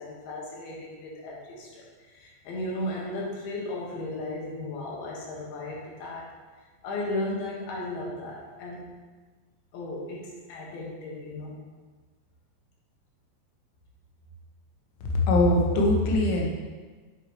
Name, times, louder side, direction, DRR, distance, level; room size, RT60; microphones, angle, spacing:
voice 1, 0.0-6.2 6.8-9.0 9.7-11.6, left 1 dB, 65° left, -3 dB, 2.9 m, -35 dB
voice 2, 15.0-16.5, left 2 dB, 80° left, -1 dB, 3.6 m, -22 dB
8.6 x 7.5 x 3.0 m, 1.4 s
omnidirectional pair, 5.4 m